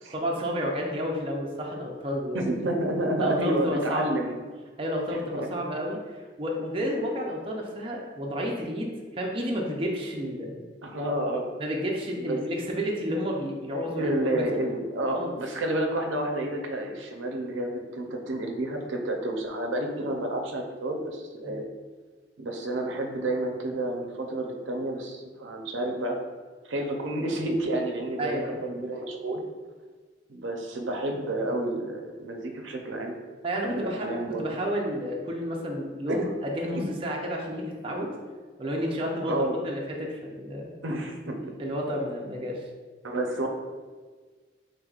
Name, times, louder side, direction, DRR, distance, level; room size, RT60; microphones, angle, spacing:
voice 1, 0.1-2.4 3.2-4.1 4.8-10.6 11.6-14.4 15.1-15.4 21.4-21.6 28.2-28.6 33.4-38.1 38.6-39.4 39.6-40.7 41.4-42.6, equal, 25° right, -1 dB, 0.5 m, -31 dB
voice 2, 2.3-4.4 5.1-5.6 10.8-11.4 12.1-12.4 13.9-21.6 22.4-26.2 26.6-29.4 30.3-33.1 33.5-34.6 36.1-36.3 36.7-36.9 39.3-39.6 40.8-41.4 43.0-43.5, right 1 dB, 75° right, 2 dB, 0.6 m, -30 dB
5.0 x 3.8 x 2.4 m, 1.4 s
head